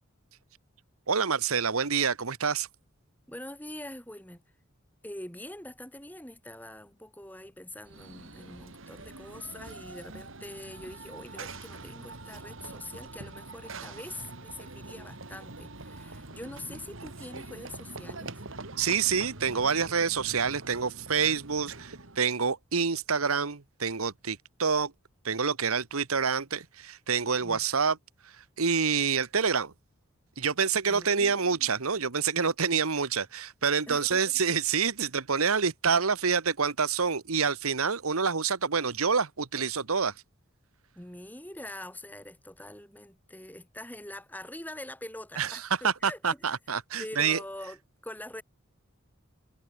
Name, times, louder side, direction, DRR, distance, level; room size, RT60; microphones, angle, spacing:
voice 1, 1.1-2.7 18.8-24.9 25.2-28.0 28.6-29.7 30.4-40.1 45.4-47.4, right 5 dB, 90° right, 1.3 m, -27 dB
voice 2, 3.3-4.4 5.0-18.4 27.4-27.6 30.9-31.6 33.9-34.2 41.0-46.2 47.0-48.4, left 1 dB, 10° left, 5.9 m, -44 dB
Run / Train, 7.8-22.3, right 3 dB, 65° right, 2.4 m, -44 dB
head